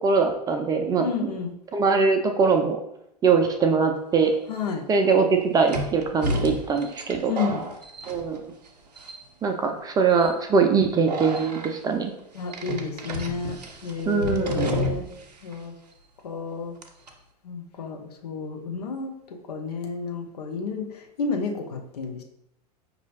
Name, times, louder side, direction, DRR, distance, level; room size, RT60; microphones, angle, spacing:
voice 1, 0.0-1.0 1.7-2.8 3.2-4.3 4.9-7.3 8.1-8.4 9.4-12.1 14.1-14.7, right 5 dB, 20° right, 4 dB, 0.4 m, -22 dB
voice 2, 1.0-1.5 4.5-4.8 7.3-7.6 12.3-15.1 15.4-15.7 16.2-16.7 17.4-19.1 19.5-22.2, left 5 dB, 70° left, 3 dB, 0.6 m, -31 dB
sound 1, 4.3-4.4 5.7-8.7 9.0-9.5 10.1-10.3 11.1-11.7 12.5-15.3 15.5-15.6 16.8-17.1, equal, 75° right, 0.6 m, -31 dB
5.3 x 2.7 x 3.0 m, 0.79 s
figure-of-eight pair, 85°, 21 cm